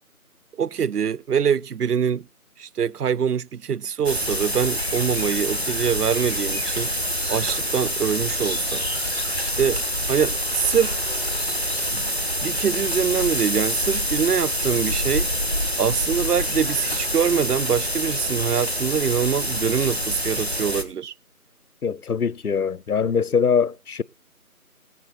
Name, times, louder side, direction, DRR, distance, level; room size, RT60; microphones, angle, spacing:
voice 1, 0.6-2.3 2.6-6.9 7.3-8.8 9.6-9.8 10.1-11.0 11.9-12.1 12.4-15.3 15.8-21.1, right 7 dB, 90° right, 0.6 m, -24 dB
sound 1, 4.0-20.8, equal, 45° right, 1.3 m, -26 dB
voice 2, 21.8-24.0, left 6 dB, 75° left, 0.6 m, -22 dB
19.5 x 8.3 x 4.2 m
figure-of-eight pair, 180°, 45 cm